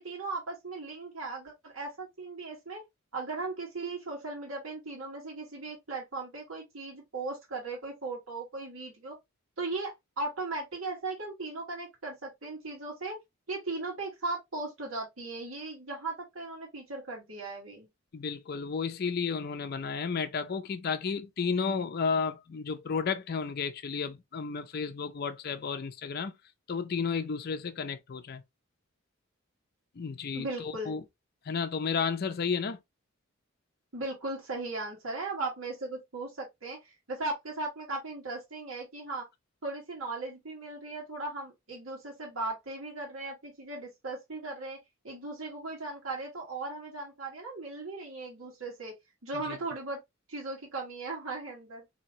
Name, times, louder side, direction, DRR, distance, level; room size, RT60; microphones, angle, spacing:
voice 1, 0.0-2.8 3.1-9.2 9.6-13.2 13.5-17.9 30.3-30.9 33.9-39.2 39.6-44.8 45.0-48.9 49.2-50.0 50.3-51.8, right 3 dB, 85° right, 1.4 m, -37 dB
voice 2, 18.1-26.3 26.7-28.4 30.0-31.0 31.5-32.8, left 5 dB, 50° left, 0.5 m, -32 dB
4.1 x 2.8 x 2.7 m
head